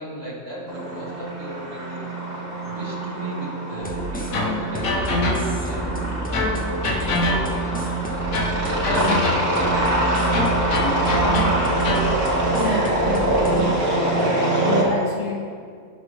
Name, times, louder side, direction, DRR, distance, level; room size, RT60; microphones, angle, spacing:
voice 1, 0.0-6.5 6.8-7.9 8.6-10.4, equal, 60° right, -5 dB, 2.6 m, -35 dB
sound 1, 0.7-14.8, right 2 dB, 40° right, 1.8 m, -24 dB
sound 2, 3.8-13.6, right 1 dB, 5° left, 0.9 m, -31 dB
sound 3, 4.3-5.7 6.3-7.8 8.3-9.7 10.3-12.2, left 2 dB, 80° left, 1.5 m, -25 dB
voice 2, 8.9-9.3 11.2-12.2 12.6-15.4, left 2 dB, 60° left, -4 dB, 2.2 m, -28 dB
17.5 x 6.0 x 3.3 m, 2.1 s
omnidirectional pair, 1.4 m